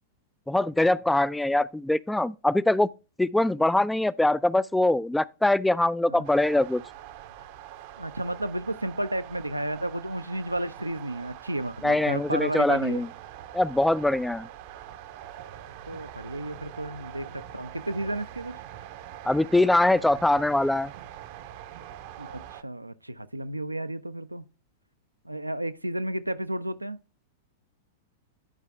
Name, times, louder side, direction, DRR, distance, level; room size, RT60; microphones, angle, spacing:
voice 1, 0.5-2.9 3.2-6.8 11.8-13.1 13.5-14.5 19.2-20.9, left 1 dB, 5° left, 0.3 m, -23 dB
sound 1, 6.2-22.6, right 11 dB, 45° right, 0.7 m, -44 dB
voice 2, 8.0-13.0 15.9-18.5 22.2-24.4 25.2-27.0, right 1 dB, 85° right, 0.5 m, -32 dB
10.5 x 4.9 x 3.3 m
figure-of-eight pair, 95°, 0 cm